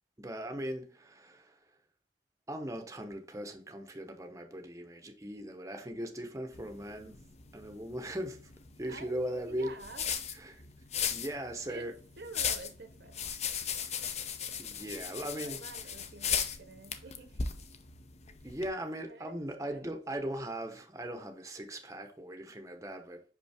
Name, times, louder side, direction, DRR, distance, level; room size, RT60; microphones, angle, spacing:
voice 1, 0.2-1.6 2.5-7.2 7.5-8.5 8.8-9.8 10.3-10.6 11.1-11.9 14.6-15.6 18.4-23.2, right 1 dB, 20° right, 0.7 m, -39 dB
sound 1, 6.5-18.7, left 7 dB, 40° left, 0.6 m, -38 dB
voice 2, 8.9-10.1 11.7-11.9 12.2-13.2 15.1-17.5 18.9-19.9, right 3 dB, 65° right, 0.9 m, -49 dB
5.4 x 5.4 x 3.4 m
head